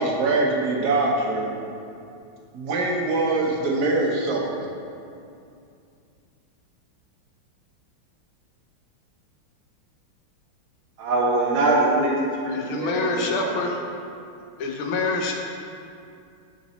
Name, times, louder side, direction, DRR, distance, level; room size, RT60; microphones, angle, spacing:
voice 1, 0.0-1.5 2.5-4.6, right 2 dB, 60° right, -2 dB, 1.3 m, -23 dB
voice 2, 11.0-13.5, right 2 dB, 80° right, -2 dB, 1.8 m, -23 dB
voice 3, 12.5-13.8 14.6-15.3, left 3 dB, 80° left, 1 dB, 1.7 m, -26 dB
9.3 x 4.0 x 4.1 m, 2.5 s
omnidirectional pair, 2.3 m